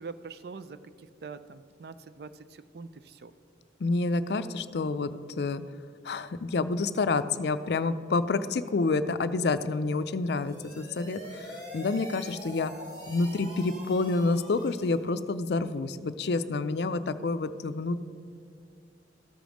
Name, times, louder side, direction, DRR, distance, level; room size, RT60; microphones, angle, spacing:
voice 1, 0.0-3.3, right 4 dB, 60° right, 13 dB, 0.4 m, -44 dB
voice 2, 3.8-5.6 6.0-12.7 13.1-18.0, left 3 dB, 60° left, 12 dB, 0.4 m, -28 dB
sound 1, 10.3-15.1, equal, 40° right, 2.0 m, -44 dB
13.5 x 5.2 x 6.2 m, 2.4 s
head